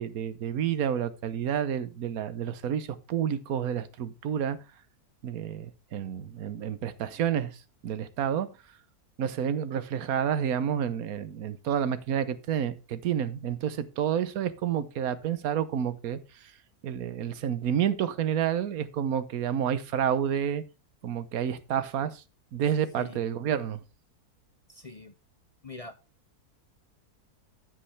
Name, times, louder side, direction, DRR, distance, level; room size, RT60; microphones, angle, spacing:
voice 1, 0.0-4.6 5.2-8.5 9.2-16.2 16.8-20.6 21.0-22.2 22.5-23.8, right 9 dB, 70° right, 1.3 m, -29 dB
voice 2, 24.7-25.1 25.6-26.0, left 3 dB, 40° left, 0.5 m, -43 dB
15.5 x 5.5 x 3.3 m
omnidirectional pair, 1.6 m